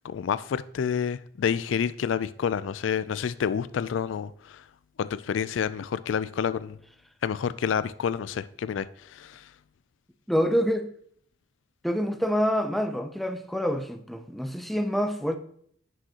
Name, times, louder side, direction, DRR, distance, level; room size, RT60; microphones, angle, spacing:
voice 1, 0.0-4.6 5.0-6.8 7.2-8.9 9.1-9.4, left 7 dB, 85° left, 0.4 m, -29 dB
voice 2, 10.3-10.9 11.8-15.4, equal, ahead, 0.5 m, -26 dB
9.8 x 6.1 x 2.9 m
head